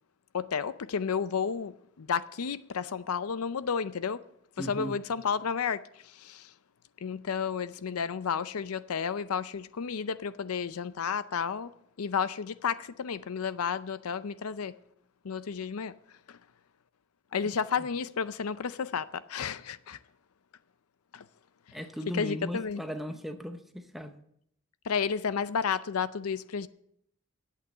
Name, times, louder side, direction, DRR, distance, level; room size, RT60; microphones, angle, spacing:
voice 1, 0.3-4.2 4.6-6.5 7.0-11.7 12.0-14.7 15.2-15.9 16.3-16.4 17.3-20.0 21.1-21.2 22.1-22.8 24.8-26.7, left 6 dB, 85° left, 0.5 m, -32 dB
voice 2, 4.6-5.0 17.8-17.9 21.7-24.2, equal, ahead, 0.7 m, -37 dB
11.0 x 8.5 x 6.6 m
head